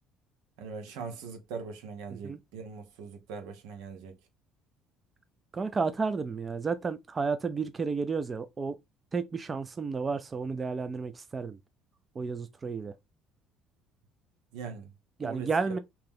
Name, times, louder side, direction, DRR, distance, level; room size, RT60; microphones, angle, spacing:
voice 1, 0.6-4.2 14.5-14.9 15.2-15.8, right 5 dB, 85° right, 1.1 m, -41 dB
voice 2, 5.5-8.7 9.1-11.6 12.2-12.9 15.2-15.8, right 4 dB, 25° right, 0.4 m, -32 dB
3.0 x 2.9 x 3.6 m
cardioid pair, 130°, 0 cm